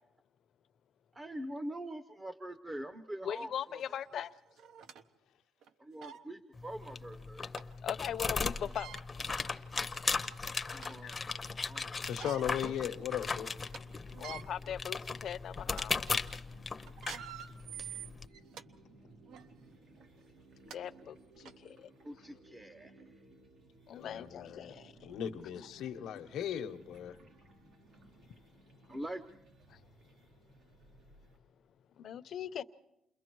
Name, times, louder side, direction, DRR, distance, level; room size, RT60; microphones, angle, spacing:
voice 1, 1.1-4.2 5.8-7.5 10.7-11.9 12.6-12.7 17.1-17.2 21.4-21.5 22.0-23.2 28.9-29.3, right 1 dB, 15° right, 0.7 m, -44 dB
voice 2, 3.2-4.3 7.8-8.9 11.0-11.2 14.2-15.9 20.7-21.1 23.9-24.7 32.0-32.6, left 9 dB, 55° left, 0.7 m, -39 dB
sound 1, 3.8-3.9 4.6-5.0 5.6-5.7 6.0-6.2 7.6-7.7 8.6-9.0 9.8-9.9 10.4-11.1 12.0-12.6 13.1-13.2 13.5-13.8 14.1-14.4 15.1-15.3 15.7-15.8 16.9-18.6 19.3-19.5 20.3-20.4 20.7-20.8 21.4-21.5, right 9 dB, 75° right, 0.9 m, -46 dB
sound 2, 6.5-18.2, left 4 dB, 20° left, 0.7 m, -37 dB
voice 3, 12.0-13.5 24.0-24.7 25.0-27.2, left 9 dB, 80° left, 1.0 m, -37 dB
sound 3, 12.7-31.4, right 2 dB, 55° right, 4.6 m, -60 dB
29.0 x 22.5 x 4.6 m
cardioid pair, 160°, 0 cm